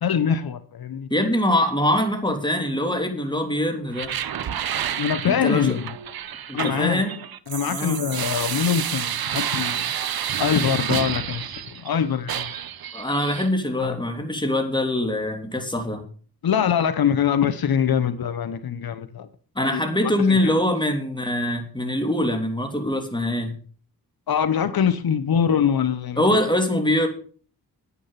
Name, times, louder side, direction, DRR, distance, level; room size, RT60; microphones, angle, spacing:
voice 1, 0.0-1.1 5.0-5.9 6.5-7.0 7.5-9.9 10.4-12.5 13.8-14.0 16.4-19.3 19.7-20.5 24.3-26.2, left 8 dB, 70° left, 1.0 m, -23 dB
voice 2, 1.1-4.1 5.3-5.8 6.5-7.2 7.7-8.0 12.9-16.0 19.5-23.5 26.2-27.1, left 1 dB, 10° left, 3.2 m, -23 dB
sound 1, 3.9-11.9 12.3-13.5, right 9 dB, 65° right, 0.9 m, -29 dB
9.8 x 9.2 x 5.8 m
cardioid pair, 55°, 38 cm